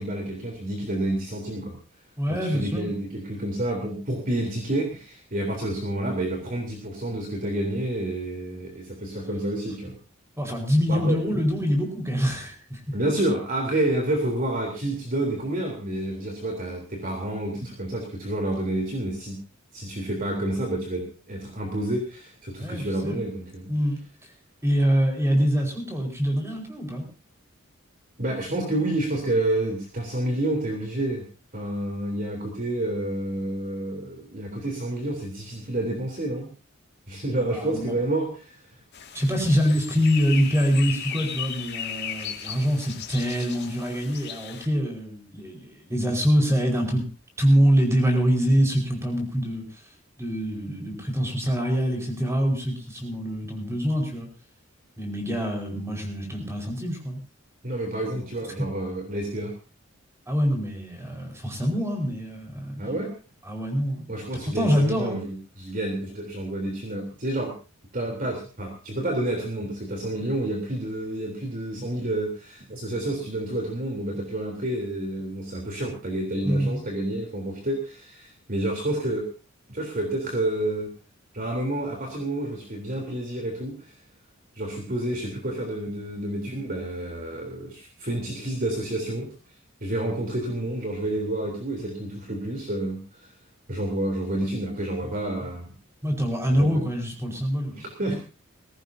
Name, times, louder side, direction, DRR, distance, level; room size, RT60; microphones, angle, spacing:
voice 1, 0.0-1.8 2.3-9.9 10.9-11.2 12.9-19.4 19.7-23.7 28.2-31.2 31.5-36.5 37.1-38.6 57.6-59.5 62.8-63.1 64.1-67.5 67.9-79.3 79.7-80.9 81.3-83.9 84.6-89.3 89.8-93.3 93.7-95.7 96.5-96.7 97.8-98.2, right 1 dB, 40° right, 1 dB, 3.7 m, -29 dB
voice 2, 2.2-2.9 10.4-12.9 22.6-23.3 23.7-24.0 24.6-27.0 37.3-37.9 39.1-47.0 47.4-49.8 50.2-54.3 55.0-57.2 60.3-62.9 63.4-64.2 64.5-65.2 76.4-76.8 96.0-97.8, equal, 15° right, 2 dB, 5.0 m, -25 dB
sound 1, 38.9-44.7, left 8 dB, 55° left, 2.3 m, -36 dB
21.0 x 17.5 x 2.8 m, 0.34 s
head